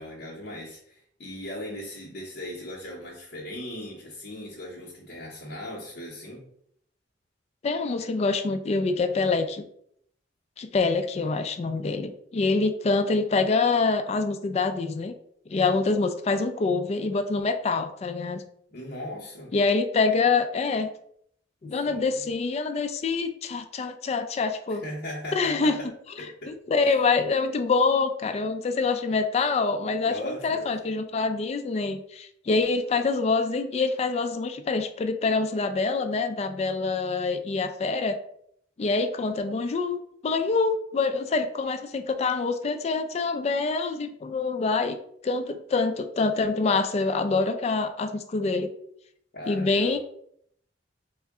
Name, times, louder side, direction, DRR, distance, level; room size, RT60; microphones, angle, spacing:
voice 1, 0.0-6.4 18.7-19.5 21.8-22.2 24.7-25.9 26.2-26.5 26.8-27.0 30.0-30.7 49.3-50.0, left 1 dB, 60° left, -7 dB, 0.7 m, -38 dB
voice 2, 7.6-9.6 10.6-15.2 15.5-18.4 19.5-20.9 21.6-24.8 25.3-25.8 26.5-38.2 38.8-45.0 45.2-48.7 49.5-50.0, left 4 dB, 35° left, 7 dB, 0.3 m, -25 dB
3.6 x 2.1 x 3.4 m, 0.69 s
head